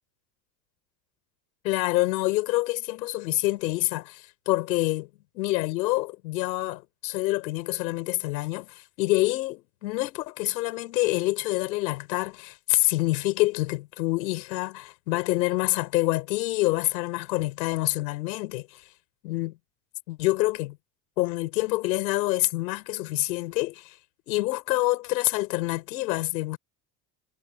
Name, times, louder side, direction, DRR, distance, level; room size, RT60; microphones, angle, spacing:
voice 1, 1.6-5.1 5.3-18.8 19.2-19.6 20.1-20.8 21.2-23.9 24.3-26.6, left 19 dB, 85° left, 4.3 m, -27 dB
hypercardioid pair, 75°, 50 cm